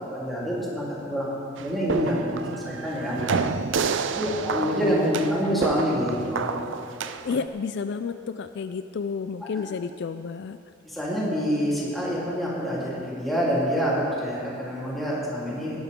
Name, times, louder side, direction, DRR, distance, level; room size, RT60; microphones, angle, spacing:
voice 1, 0.1-1.3 1.6-3.5 4.1-6.6 7.3-7.4 10.9-15.8, equal, ahead, -8 dB, 3.5 m, -27 dB
sound 1, 1.6-7.5, right 5 dB, 65° right, 0.5 m, -29 dB
voice 2, 7.2-10.6, left 5 dB, 60° left, 10 dB, 0.4 m, -31 dB
18.5 x 12.0 x 3.7 m, 2.5 s
head